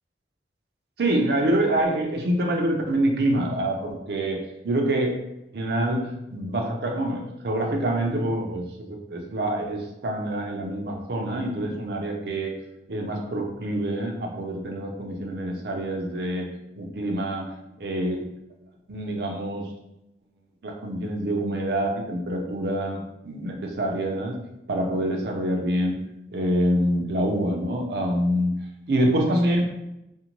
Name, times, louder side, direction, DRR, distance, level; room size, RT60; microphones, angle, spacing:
voice 1, 1.0-4.4 4.6-5.2 5.5-12.5 12.9-16.5 16.8-17.5 17.8-18.3 18.9-19.6 20.6-24.4 24.7-26.0 26.3-28.5 28.9-29.7, right 1 dB, 60° right, 2 dB, 0.5 m, -26 dB
2.6 x 2.1 x 2.9 m, 0.87 s
head